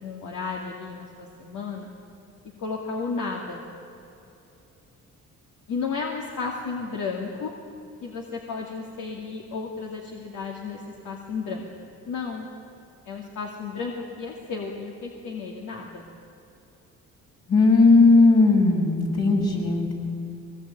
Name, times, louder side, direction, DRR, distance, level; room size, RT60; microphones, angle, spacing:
voice 1, 0.0-1.9 2.6-3.6 5.7-7.5 8.0-11.7 12.0-12.5 13.1-16.0, left 4 dB, 80° left, 0 dB, 2.5 m, -33 dB
voice 2, 17.5-20.0, left 3 dB, 60° left, 0 dB, 5.9 m, -17 dB
22.0 x 19.5 x 9.0 m, 2.9 s
cardioid pair, 90°, 30 cm